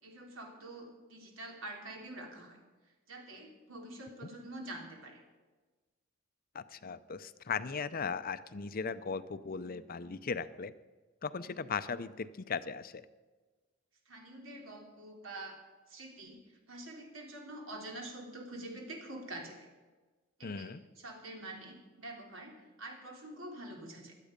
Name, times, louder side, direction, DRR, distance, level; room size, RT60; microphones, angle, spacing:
voice 1, 0.0-2.6 3.1-5.2 14.1-15.6 15.9-16.4 16.7-19.7 20.4-24.1, right 1 dB, 75° right, 1 dB, 3.5 m, -46 dB
voice 2, 6.5-10.7 11.2-13.1 20.4-20.8, left 5 dB, 45° left, 14 dB, 0.6 m, -38 dB
17.0 x 12.5 x 5.2 m, 1.3 s
head